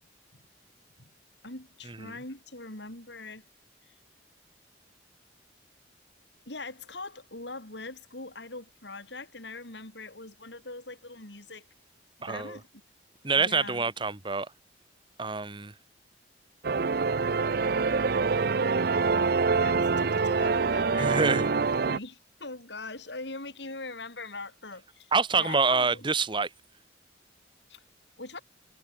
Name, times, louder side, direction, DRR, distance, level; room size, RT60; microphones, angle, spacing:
voice 1, 1.4-3.4 3.9-4.0 6.5-11.7 12.3-12.7 13.3-13.9 19.6-21.6 21.8-26.1 27.7-27.8 28.2-28.4, left 3 dB, 70° left, 5.5 m, -42 dB
voice 2, 12.2-12.6 13.2-14.5 15.2-15.7 21.0-21.4 25.1-26.5, right 4 dB, 25° right, 1.2 m, -26 dB
sound 1, 16.6-22.0, right 4 dB, 55° right, 0.6 m, -25 dB
head